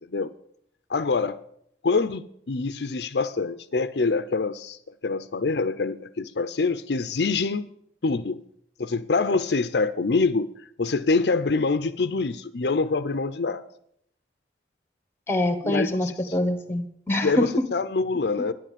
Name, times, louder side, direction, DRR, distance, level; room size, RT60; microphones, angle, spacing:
voice 1, 0.9-1.4 1.8-4.8 5.0-7.7 8.0-8.4 8.8-10.5 10.8-13.6 15.6-16.1 17.2-18.5, left 4 dB, 70° left, 0.6 m, -25 dB
voice 2, 15.3-17.5, left 1 dB, 15° left, 1.4 m, -25 dB
11.5 x 10.5 x 7.4 m
head